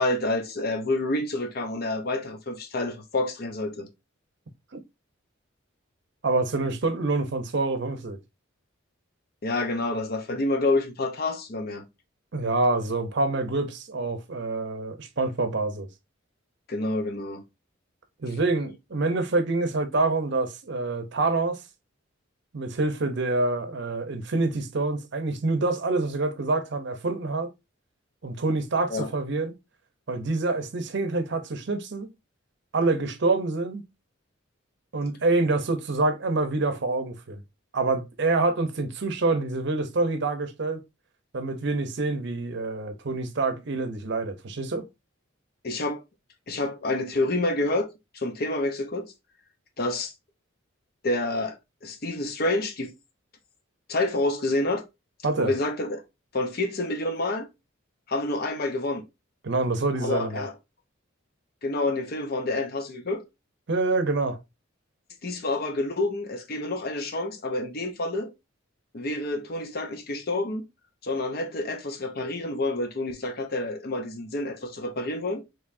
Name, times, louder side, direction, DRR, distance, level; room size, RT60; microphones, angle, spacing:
voice 1, 0.0-3.9 9.4-11.9 16.7-17.4 28.9-29.1 45.6-46.0 46.5-47.9 48.1-49.1 49.8-50.1 51.0-52.9 53.9-54.8 55.3-56.0 56.3-57.5 58.1-59.0 60.0-60.5 61.6-63.2 65.2-68.3 68.9-70.6 71.0-75.4, left 2 dB, 50° left, 0.7 m, -28 dB
voice 2, 6.2-8.2 12.3-15.9 18.2-21.6 22.5-27.5 28.2-29.5 30.1-32.1 32.7-33.8 34.9-37.4 37.7-40.8 41.3-44.9 55.2-55.5 59.4-60.5 63.7-64.4, right 3 dB, 60° right, 0.7 m, -26 dB
4.7 x 3.1 x 2.6 m
head